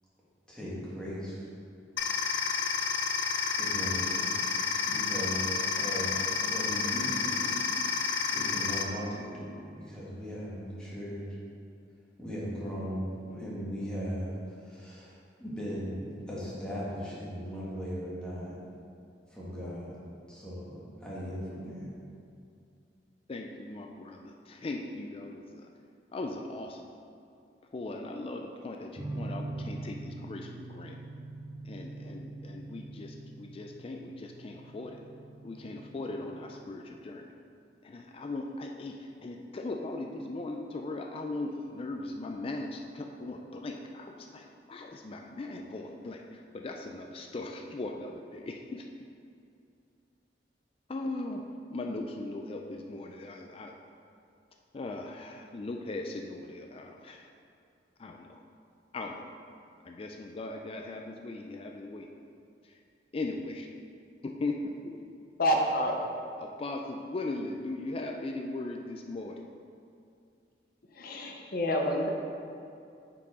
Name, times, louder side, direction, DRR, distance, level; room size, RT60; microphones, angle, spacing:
voice 1, 0.5-1.5 3.5-4.4 4.9-7.7 8.3-11.3 12.2-15.1 15.4-18.6 19.3-20.0 20.3-21.9, equal, 5° left, -8 dB, 1.7 m, -38 dB
sound 1, 2.0-8.8, left 5 dB, 85° left, 0.5 m, -30 dB
voice 2, 23.3-25.7 26.1-26.9 27.7-31.0 31.7-35.0 35.4-37.3 37.8-48.9 50.9-53.7 54.7-57.3 58.0-58.4 58.9-59.3 59.8-62.1 62.6-62.8 63.1-63.7 64.2-65.0 66.4-69.4 71.4-71.6, left 2 dB, 30° left, 3 dB, 0.4 m, -39 dB
sound 2, 29.0-36.6, right 2 dB, 30° right, 0.9 m, -43 dB
voice 3, 65.4-65.9 70.9-72.1, equal, 55° left, 0 dB, 0.7 m, -28 dB
8.9 x 4.7 x 3.7 m, 2.5 s
head